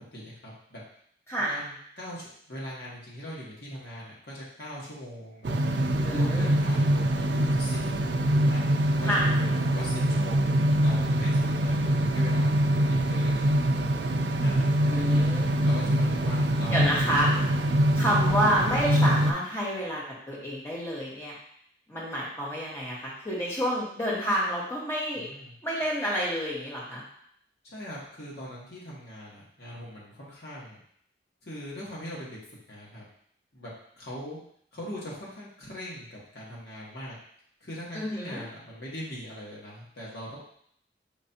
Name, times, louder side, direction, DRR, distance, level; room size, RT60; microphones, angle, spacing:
voice 1, 0.1-0.8 1.4-5.8 6.1-7.8 8.5-11.8 12.0-13.5 14.4-15.3 15.6-17.1 17.6-17.8 18.1-18.2 25.1-25.5 27.6-30.8 31.4-32.4 32.7-33.0 33.5-33.7 34.0-34.4 34.7-37.2 37.6-40.4, equal, 65° left, -6 dB, 1.5 m, -41 dB
sound 1, 5.4-19.3, right 1 dB, 70° right, 0.4 m, -24 dB
voice 2, 6.0-6.5 9.0-9.2 14.8-15.5 16.7-17.3 17.9-21.3 21.9-25.3 25.6-27.0 37.9-38.4, equal, 15° left, -6 dB, 1.2 m, -29 dB
5.2 x 3.2 x 2.8 m, 0.66 s
head